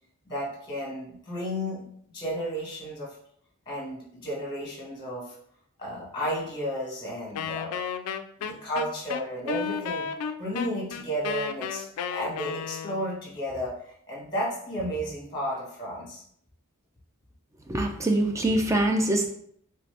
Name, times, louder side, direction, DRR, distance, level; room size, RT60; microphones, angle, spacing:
voice 1, 0.3-3.2 3.7-5.3 5.8-7.8 8.4-10.1 10.4-11.8 12.1-16.2, equal, 20° left, -4 dB, 1.1 m, -33 dB
Wind instrument woodwind instrument, 7.4-13.2, left 7 dB, 80° left, 0.3 m, -33 dB
voice 2, 17.7-19.3, right 1 dB, 15° right, 3 dB, 0.3 m, -24 dB
3.3 x 2.7 x 3.3 m, 0.67 s
head